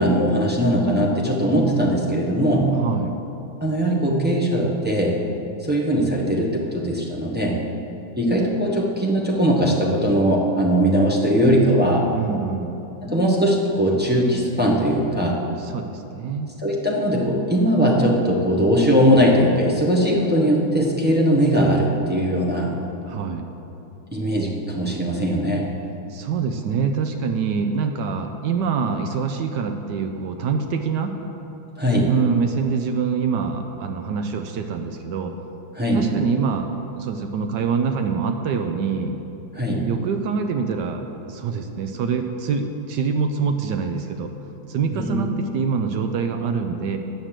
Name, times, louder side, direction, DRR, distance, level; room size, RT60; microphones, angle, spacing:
voice 1, 0.0-2.7 3.6-5.2 5.6-7.6 8.2-12.1 13.0-15.4 16.6-22.7 24.1-25.6 31.8-32.1 35.7-36.0 39.5-39.9 44.9-45.2, equal, 10° right, -4 dB, 0.6 m, -20 dB
voice 2, 2.7-3.2 12.1-12.8 15.6-16.5 23.1-23.5 26.1-31.2 32.1-35.3 35.9-36.7 36.9-39.1 39.8-44.3 44.7-47.0, right 5 dB, 70° right, 6 dB, 1.1 m, -25 dB
9.0 x 6.5 x 7.4 m, 2.9 s
omnidirectional pair, 2.2 m